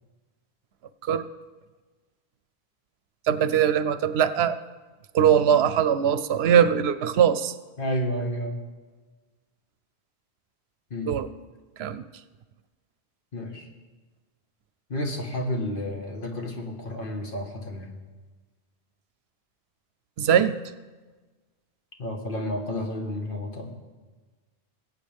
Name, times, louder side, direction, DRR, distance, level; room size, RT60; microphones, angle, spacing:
voice 1, 3.3-4.6 5.1-7.5 11.1-11.3 11.8-12.0 20.2-20.6, right 8 dB, 80° right, 13 dB, 0.8 m, -21 dB
voice 2, 7.8-8.6 10.9-11.1 13.3-13.7 14.9-17.9 22.0-23.7, left 1 dB, 55° left, 2 dB, 1.6 m, -31 dB
20.5 x 8.4 x 3.4 m, 1.3 s
omnidirectional pair, 1.1 m